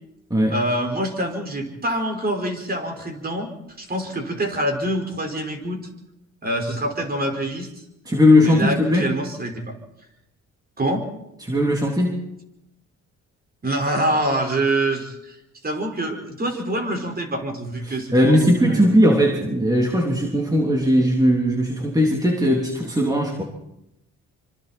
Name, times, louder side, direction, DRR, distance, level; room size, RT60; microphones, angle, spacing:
voice 1, 0.5-3.5 3.8-5.9 6.4-7.7 8.4-9.7 10.8-11.0 13.6-15.3 15.6-18.8, right 1 dB, 30° right, 3 dB, 5.2 m, -25 dB
voice 2, 8.0-9.1 11.4-12.2 17.8-23.4, equal, 10° right, 0 dB, 3.4 m, -18 dB
25.5 x 25.5 x 4.4 m, 0.86 s
cardioid pair, 90°, 30 cm